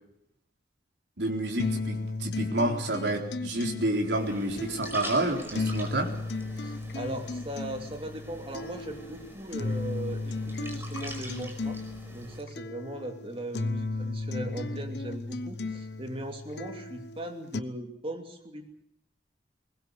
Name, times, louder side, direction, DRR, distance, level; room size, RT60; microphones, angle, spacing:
voice 1, 1.2-6.1, right 1 dB, 75° right, 2 dB, 3.9 m, -29 dB
sound 1, 1.6-17.6, left 3 dB, 70° left, 1.0 m, -35 dB
sound 2, 4.1-12.4, right 1 dB, 15° right, 4.8 m, -44 dB
voice 2, 6.6-11.8 12.1-18.8, right 1 dB, 30° right, 4 dB, 2.9 m, -39 dB
21.5 x 20.0 x 8.2 m, 0.75 s
head